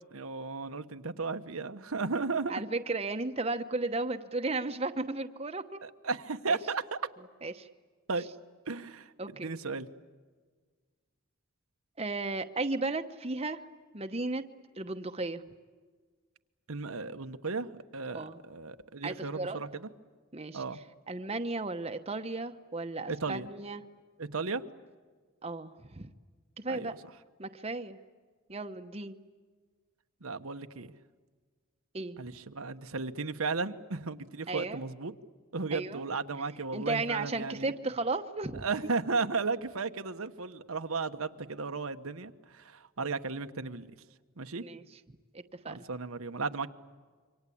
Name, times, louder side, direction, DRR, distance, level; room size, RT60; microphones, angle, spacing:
voice 1, 0.1-2.5 5.8-7.0 8.1-8.2 8.7-9.1 9.4-9.9 16.7-17.7 17.9-19.9 20.5-20.8 23.1-23.5 24.2-24.6 26.7-26.9 30.2-30.9 32.2-35.1 35.5-37.7 38.6-43.9 44.4-44.6 45.7-46.7, right 4 dB, 90° right, 8 dB, 1.2 m, -35 dB
voice 2, 2.5-5.8 6.5-6.6 7.4-7.7 9.2-9.5 12.0-13.6 13.9-14.4 14.8-15.4 18.1-18.4 19.0-19.6 20.3-20.6 21.1-23.8 25.4-26.1 26.6-26.9 27.4-28.0 28.5-29.2 31.9-32.2 34.5-34.8 35.7-36.0 36.7-38.6 44.6-44.8 45.3-45.8, right 3 dB, 30° right, 7 dB, 1.0 m, -34 dB
27.0 x 25.0 x 8.6 m, 1.5 s
head